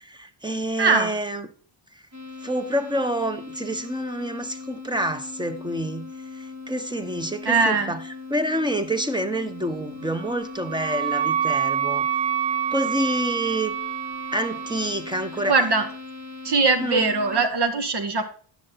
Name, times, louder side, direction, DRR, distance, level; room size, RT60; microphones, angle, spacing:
voice 1, 0.0-1.5 2.4-8.0 8.3-12.1 12.7-13.8 14.3-15.5 16.8-17.1, right 1 dB, 10° right, 1.4 m, -28 dB
voice 2, 0.8-1.1 7.4-7.9 15.5-15.9 16.4-18.2, right 4 dB, 50° right, 2.0 m, -21 dB
sound 1, 2.1-17.5, left 4 dB, 35° right, 2.0 m, -39 dB
Wind instrument woodwind instrument, 10.1-14.9, right 9 dB, 80° right, 1.0 m, -27 dB
10.5 x 7.0 x 4.2 m
supercardioid pair, 70°, 50 cm